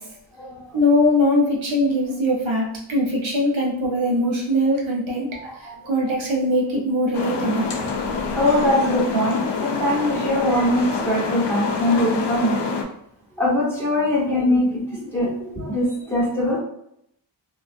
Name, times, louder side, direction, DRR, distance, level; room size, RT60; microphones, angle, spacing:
voice 1, 0.7-5.3 5.9-7.7, left 1 dB, 85° right, -3 dB, 0.8 m, -21 dB
voice 2, 5.3-6.0 7.8-7.9 8.3-12.6 13.4-16.6, left 1 dB, 5° left, -7 dB, 1.2 m, -22 dB
sound 1, 7.1-12.8, left 4 dB, 65° left, 0.5 m, -26 dB
2.3 x 2.3 x 2.5 m, 0.73 s
wide cardioid pair, 60°, 46 cm